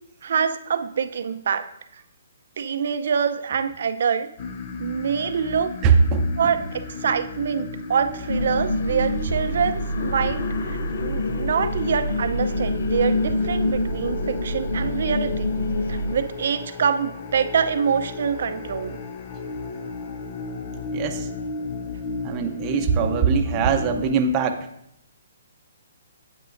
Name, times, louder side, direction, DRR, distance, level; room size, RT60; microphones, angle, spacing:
voice 1, 0.2-1.7 2.6-4.3 4.8-5.7 6.4-15.5 15.9-19.0, right 7 dB, 60° right, 10 dB, 0.6 m, -25 dB
sound 1, 4.4-24.1, left 4 dB, 40° left, 0.7 m, -34 dB
voice 2, 5.8-6.3 20.9-21.3 22.2-24.7, right 5 dB, 25° right, 5 dB, 0.7 m, -21 dB
sound 2, 8.3-16.2, left 1 dB, 85° left, 0.6 m, -26 dB
8.7 x 8.5 x 2.6 m, 0.77 s
hypercardioid pair, 140°, 0 cm